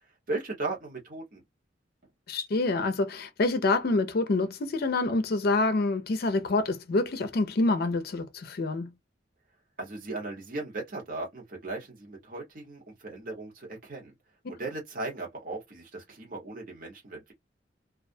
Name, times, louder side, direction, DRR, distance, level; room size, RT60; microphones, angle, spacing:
voice 1, 0.3-1.4 9.8-14.1 14.5-17.3, right 2 dB, 50° right, 1.0 m, -37 dB
voice 2, 2.3-8.9, left 2 dB, 55° left, 0.4 m, -27 dB
2.4 x 2.1 x 2.6 m
head